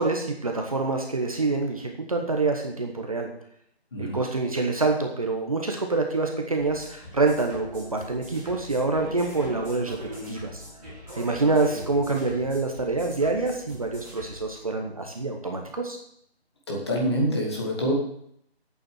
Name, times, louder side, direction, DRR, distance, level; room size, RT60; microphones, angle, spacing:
voice 1, 0.0-3.3 4.0-10.0 10.3-10.6 11.1-16.0, right 3 dB, 35° right, 3 dB, 1.1 m, -26 dB
sound 1, 6.6-14.4, equal, 5° right, 3.1 m, -41 dB
voice 2, 16.7-17.9, equal, 25° left, -2 dB, 2.2 m, -26 dB
8.6 x 7.1 x 7.9 m, 0.71 s
figure-of-eight pair, 170°, 33 cm